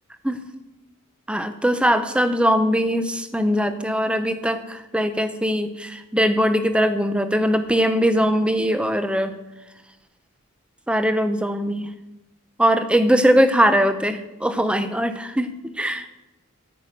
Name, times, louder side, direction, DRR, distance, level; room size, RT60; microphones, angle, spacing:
voice 1, 1.3-9.3 10.9-11.9 12.6-16.1, equal, 5° right, 10 dB, 0.6 m, -21 dB
9.3 x 5.9 x 8.2 m, 1.0 s
head